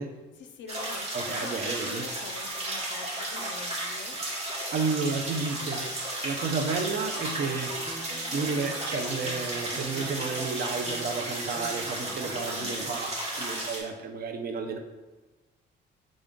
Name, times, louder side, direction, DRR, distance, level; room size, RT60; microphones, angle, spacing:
voice 1, 0.4-4.2 12.0-12.8, left 5 dB, 65° left, 6 dB, 0.4 m, -45 dB
sound 1, 0.7-13.8, right 1 dB, 30° right, 1.2 m, -34 dB
voice 2, 1.1-2.1 4.5-5.9 6.2-8.0 8.3-14.8, right 4 dB, 50° right, 6 dB, 0.6 m, -32 dB
arpeggio loop, 7.2-12.9, right 1 dB, 5° left, 0.8 m, -45 dB
3.7 x 3.6 x 3.7 m, 1.2 s
cardioid pair, 90°, 20 cm